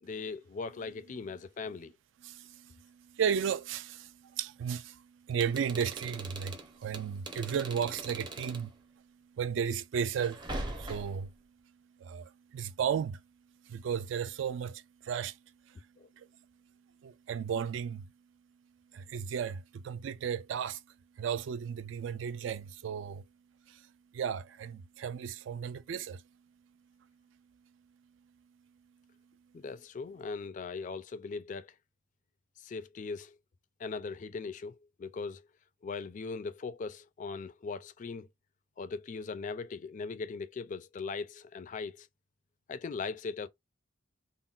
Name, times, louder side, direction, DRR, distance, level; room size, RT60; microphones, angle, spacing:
voice 1, 0.0-1.9 16.0-16.1 29.5-31.7 32.6-33.4 33.8-35.5 35.8-38.3 38.8-42.1 42.7-43.5, left 4 dB, 40° left, 0.3 m, -39 dB
voice 2, 2.2-10.5 10.8-11.3 12.0-13.2 13.6-15.4 15.7-15.9 16.2-16.3 17.0-18.1 18.9-20.8 21.2-23.2 23.7-26.2, right 7 dB, 65° right, 0.3 m, -35 dB
sound 1, 5.3-8.7 10.2-11.3, right 2 dB, 25° right, 0.6 m, -41 dB
3.8 x 2.1 x 2.4 m
head